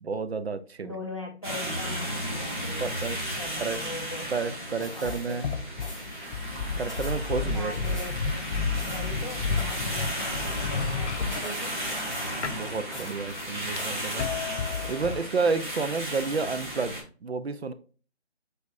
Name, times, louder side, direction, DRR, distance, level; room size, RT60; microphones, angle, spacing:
voice 1, 0.0-1.0 2.8-3.2 3.6-3.8 4.3-5.5 6.8-8.0 12.4-14.2 14.9-17.7, right 4 dB, 65° right, 11 dB, 0.6 m, -30 dB
voice 2, 0.8-3.1 3.4-4.3 5.0-5.4 7.4-8.5 8.8-11.8, left 2 dB, 25° left, 0 dB, 0.6 m, -40 dB
sound 1, 1.4-17.0, equal, 45° right, 1.9 m, -34 dB
sound 2, 4.1-5.5 5.8-6.2 6.5-8.3 8.6-10.9 11.3-12.6 12.9-14.1 14.6-15.4 15.8-15.9, left 1 dB, 5° right, 1.8 m, -45 dB
sound 3, 5.0-12.2 12.4-15.2, left 4 dB, 85° left, 0.6 m, -32 dB
5.1 x 4.0 x 2.6 m, 0.38 s
figure-of-eight pair, 165°, 34 cm